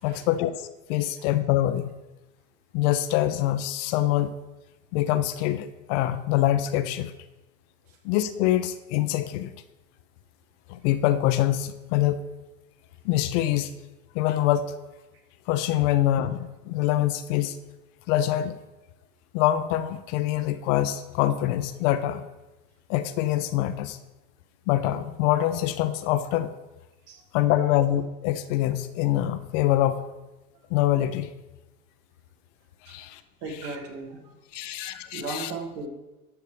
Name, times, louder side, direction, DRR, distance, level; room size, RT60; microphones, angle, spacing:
voice 1, 0.0-1.9 2.7-4.3 4.9-7.1 8.0-9.5 10.7-12.2 13.0-13.7 14.1-14.7 15.5-17.6 18.1-18.5 19.3-22.3 22.9-24.0 24.7-26.5 27.3-30.1 30.7-31.3 32.8-33.2 34.5-35.5, left 13 dB, 55° left, 11 dB, 0.7 m, -25 dB
voice 2, 33.4-34.3 35.1-35.9, right 3 dB, 50° right, 2 dB, 1.9 m, -36 dB
11.5 x 6.9 x 3.3 m, 1.1 s
hypercardioid pair, 90°, 45 cm